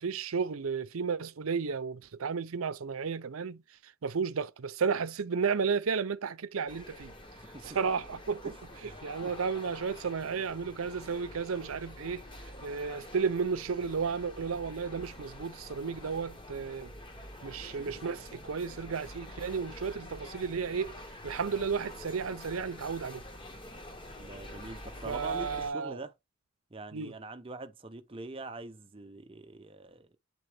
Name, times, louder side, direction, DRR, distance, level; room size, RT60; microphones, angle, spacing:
voice 1, 0.0-3.6 4.0-7.1 7.6-8.5 9.0-12.2 12.6-16.9 17.4-21.0 21.2-23.2 25.1-26.0 26.9-27.1, right 5 dB, 85° right, 0.6 m, -33 dB
sound 1, 6.7-25.7, left 1 dB, 25° left, 0.9 m, -47 dB
voice 2, 8.4-9.3 24.2-26.1 26.7-30.2, right 2 dB, 25° right, 0.7 m, -44 dB
8.5 x 3.9 x 3.4 m
head